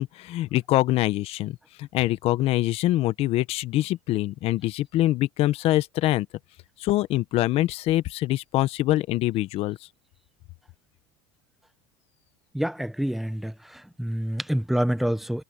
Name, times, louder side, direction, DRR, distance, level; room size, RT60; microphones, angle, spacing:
voice 1, 0.0-6.3 6.8-9.8, left 16 dB, 55° left, 1.1 m, -24 dB
voice 2, 12.5-15.4, equal, ahead, 1.3 m, -27 dB
supercardioid pair, 110°, 12 cm